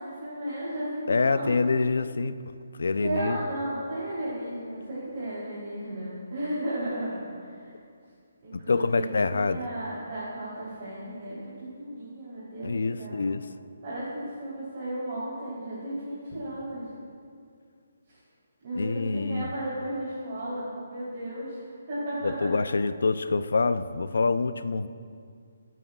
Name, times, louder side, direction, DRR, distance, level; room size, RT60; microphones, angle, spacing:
voice 1, 0.0-1.7 3.0-7.7 8.4-13.2 13.8-16.9 18.1-18.2 18.6-22.5, right 1 dB, 35° right, -9 dB, 3.2 m, -34 dB
voice 2, 1.1-2.4 2.8-3.4 8.5-9.7 12.6-13.5 18.7-19.5 22.2-24.9, left 4 dB, 75° left, 13 dB, 0.5 m, -26 dB
24.5 x 9.1 x 2.4 m, 2.3 s
hypercardioid pair, 175°, 0 cm